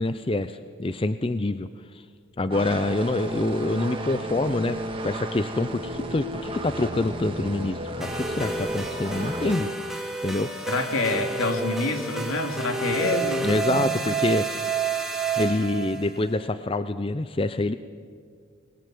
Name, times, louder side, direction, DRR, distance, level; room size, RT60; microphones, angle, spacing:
voice 1, 0.0-1.7 2.4-9.7 10.2-10.5 13.4-14.6 15.3-17.7, left 2 dB, 25° left, 12 dB, 0.5 m, -26 dB
sound 1, 2.5-9.5, right 1 dB, 25° right, 1.8 m, -33 dB
sound 2, 8.0-16.1, right 4 dB, ahead, 2.1 m, -30 dB
voice 2, 10.7-13.9, left 2 dB, 80° left, 4 dB, 2.8 m, -27 dB
24.5 x 20.5 x 7.8 m, 2.1 s
head